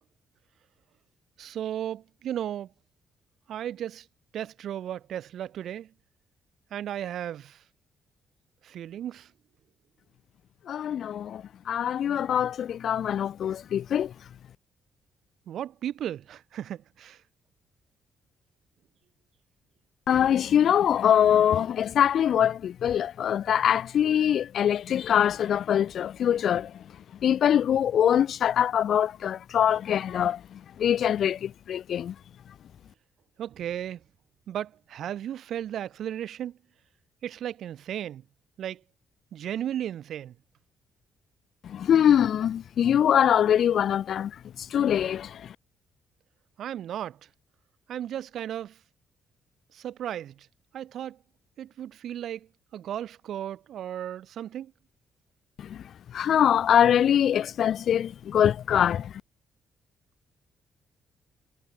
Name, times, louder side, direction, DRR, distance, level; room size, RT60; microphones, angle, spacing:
voice 1, 1.4-2.7 3.5-4.0 4.3-5.9 6.7-7.6 8.6-9.3 15.5-17.2 33.4-34.0 34.5-36.5 37.2-38.2 38.6-38.8 39.3-40.3 46.6-47.2 47.9-48.7 49.7-50.3 50.7-51.2 51.6-52.5 52.7-54.7, right 10 dB, 70° right, 5.8 m, -35 dB
voice 2, 10.7-14.1 20.1-26.8 27.2-32.1 41.6-45.5 55.6-55.8 56.1-59.2, left 9 dB, 65° left, 0.7 m, -23 dB
cardioid pair, 90°, 0 cm